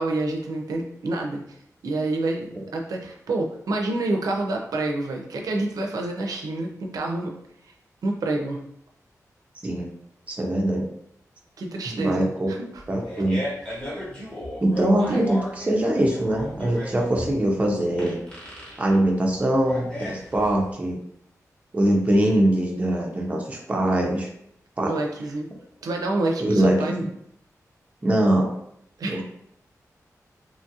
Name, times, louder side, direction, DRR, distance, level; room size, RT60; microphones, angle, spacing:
voice 1, 0.0-1.4 1.8-7.3 8.0-8.6 11.6-12.8 15.1-15.3 24.9-25.5 25.8-27.1 29.0-29.2, right 2 dB, 85° right, 1 dB, 0.4 m, -28 dB
voice 2, 10.3-10.9 11.9-12.5 12.9-13.4 14.6-18.2 18.8-21.0 21.7-24.3 24.8-24.9 26.4-27.1 28.0-28.5 29.0-29.2, right 1 dB, 25° right, 0 dB, 0.5 m, -22 dB
Fart, 12.8-20.7, left 1 dB, 15° left, 0.9 m, -36 dB
2.9 x 2.3 x 2.7 m, 0.73 s
wide cardioid pair, 175°, 6 cm